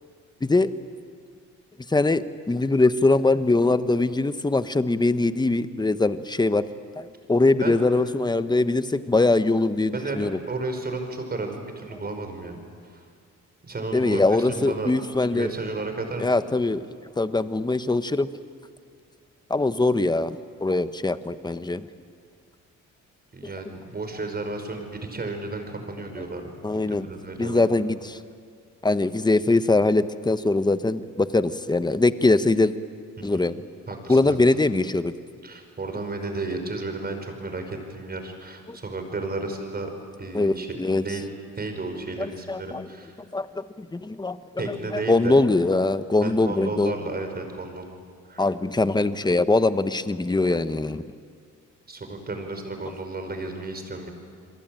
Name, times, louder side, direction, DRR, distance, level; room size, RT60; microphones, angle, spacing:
voice 1, 0.4-0.7 1.9-6.6 7.0-10.4 13.9-15.5 16.2-16.8 17.2-18.3 19.5-21.9 26.6-27.1 27.4-28.2 28.8-32.7 33.2-33.5 34.1-35.1 38.7-38.8 40.3-40.5 40.8-41.0 42.2-42.8 43.3-46.9 48.4-51.0, left 2 dB, 15° left, 12 dB, 1.2 m, -22 dB
voice 2, 9.9-12.6 12.8-13.0 13.6-14.9 15.3-16.3 23.3-26.4 26.7-27.6 33.2-33.4 33.9-34.4 35.4-39.9 40.2-41.2 41.6-43.1 44.6-45.4 46.2-47.8 48.3-48.5 51.9-54.1, right 3 dB, 30° right, 5 dB, 5.6 m, -33 dB
29.0 x 22.5 x 9.0 m, 2.1 s
cardioid pair, 90°, 30 cm